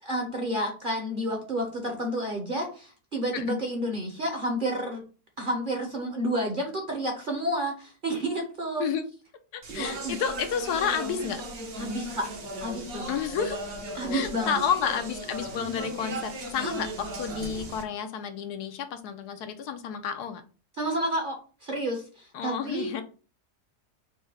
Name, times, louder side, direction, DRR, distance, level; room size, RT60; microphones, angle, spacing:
voice 1, 0.0-5.0 5.4-8.8 9.7-10.2 11.8-12.2 12.6-13.2 14.0-14.6 16.6-16.8 20.8-22.9, right 1 dB, 40° right, 2 dB, 0.9 m, -30 dB
voice 2, 9.5-11.4 13.1-13.6 14.1-20.4 22.3-23.0, left 7 dB, 80° left, 8 dB, 1.1 m, -30 dB
Speech, 9.6-17.8, right 1 dB, 65° right, 1.4 m, -37 dB
4.6 x 2.1 x 4.6 m, 0.36 s
omnidirectional pair, 1.7 m